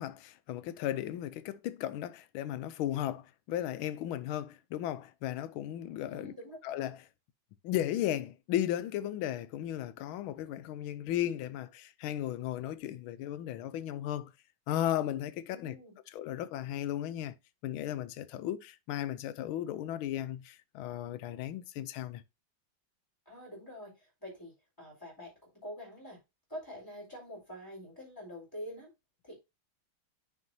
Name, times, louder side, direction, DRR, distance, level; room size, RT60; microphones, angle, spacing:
voice 1, 0.0-6.3 6.6-7.0 7.6-14.3 14.7-15.8 16.1-17.3 17.6-22.2, left 12 dB, 85° left, 1.4 m, -35 dB
voice 2, 6.1-6.6 15.5-15.9 23.3-26.2 26.5-28.9 29.2-29.4, equal, 10° left, 4.1 m, -46 dB
9.8 x 4.9 x 2.7 m
omnidirectional pair, 2.2 m